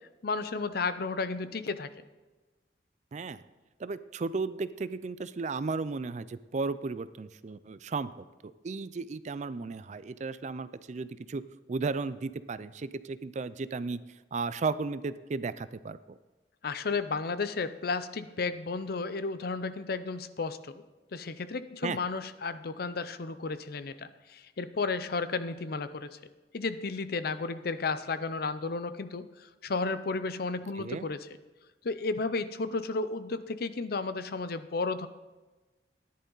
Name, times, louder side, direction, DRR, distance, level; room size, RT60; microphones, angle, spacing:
voice 1, 0.2-1.9 16.6-20.8 21.1-26.2 26.5-31.3 31.8-35.1, left 4 dB, 60° left, 12 dB, 0.6 m, -33 dB
voice 2, 3.1-3.4 3.8-11.4 11.7-14.0 14.3-16.2 21.8-22.0 30.8-31.1, right 4 dB, 40° right, 15 dB, 0.4 m, -35 dB
14.0 x 10.5 x 4.0 m, 1.2 s
head